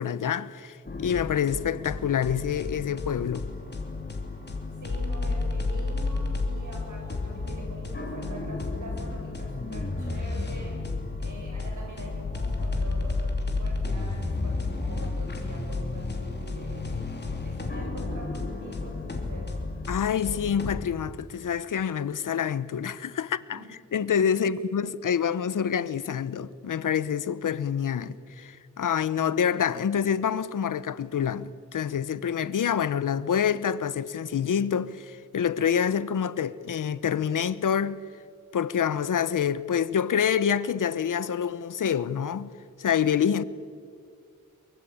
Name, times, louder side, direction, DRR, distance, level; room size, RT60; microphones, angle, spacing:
voice 1, 0.0-3.5 19.9-23.6 23.9-38.0 38.5-42.5 42.8-43.4, left 8 dB, 80° left, 0.9 m, -27 dB
sound 1, 0.9-20.8, left 3 dB, 35° left, 3.0 m, -32 dB
voice 2, 4.8-10.8 11.2-16.9 17.4-19.6 23.5-23.7 24.4-24.6, right 2 dB, 70° right, 7.6 m, -44 dB
23.5 x 23.5 x 8.7 m
wide cardioid pair, 140°, 32 cm